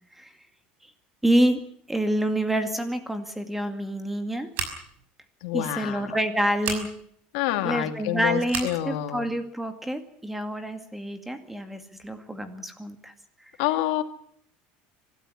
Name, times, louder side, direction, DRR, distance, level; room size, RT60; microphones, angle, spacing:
voice 1, 1.2-1.6 1.9-4.5 5.5-6.9 7.6-13.1, right 1 dB, 5° right, 8 dB, 2.2 m, -27 dB
Scissors, 4.5-5.0 6.6-6.8 8.5-8.8, right 5 dB, 45° right, 5.6 m, -32 dB
voice 2, 5.4-6.2 7.3-9.3 13.6-14.0, left 14 dB, 75° left, 8 dB, 2.4 m, -27 dB
25.0 x 13.0 x 9.9 m, 0.65 s
cardioid pair, 160°, 4 cm